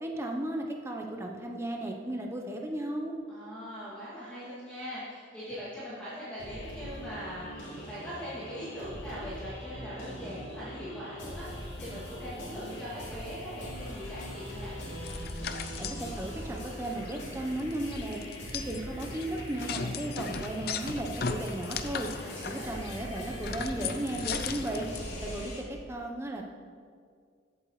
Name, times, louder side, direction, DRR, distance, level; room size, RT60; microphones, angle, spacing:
voice 1, 0.0-3.2 15.8-18.2 18.5-22.1 22.4-24.9 25.2-26.4, right 1 dB, 15° right, 2 dB, 0.8 m, -35 dB
voice 2, 3.3-14.7 22.2-22.8, equal, 5° left, -13 dB, 2.5 m, -41 dB
sound 1, 6.4-25.6, equal, 70° left, 2.7 m, -41 dB
sound 2, 15.0-16.1 16.6-16.7 16.8-17.2 17.6-25.0, left 6 dB, 50° left, 0.5 m, -37 dB
14.5 x 8.0 x 3.2 m, 2.1 s
head